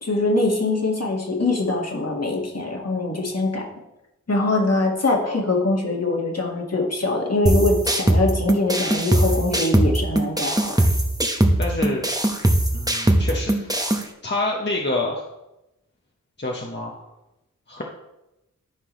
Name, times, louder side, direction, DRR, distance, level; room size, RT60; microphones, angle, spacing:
voice 1, 0.0-3.6 4.3-10.8, left 2 dB, 50° left, -1 dB, 1.8 m, -23 dB
sound 1, 7.5-14.0, right 1 dB, 10° right, 1.0 m, -21 dB
voice 2, 11.6-12.1 12.7-13.7 14.2-15.2 16.4-17.0 17.7-17.8, left 2 dB, 35° left, -2 dB, 1.1 m, -27 dB
12.5 x 4.6 x 3.1 m, 0.94 s
wide cardioid pair, 40°, 32 cm